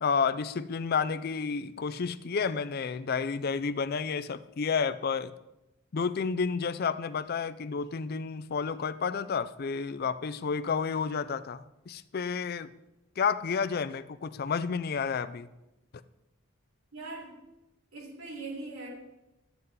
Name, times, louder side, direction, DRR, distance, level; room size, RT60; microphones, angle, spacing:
voice 1, 0.0-5.3 5.9-12.7 13.2-15.5, left 5 dB, 45° left, 14 dB, 0.4 m, -31 dB
voice 2, 16.9-17.4 17.9-18.9, right 3 dB, 75° right, -4 dB, 3.8 m, -40 dB
12.5 x 7.9 x 3.7 m, 0.95 s
head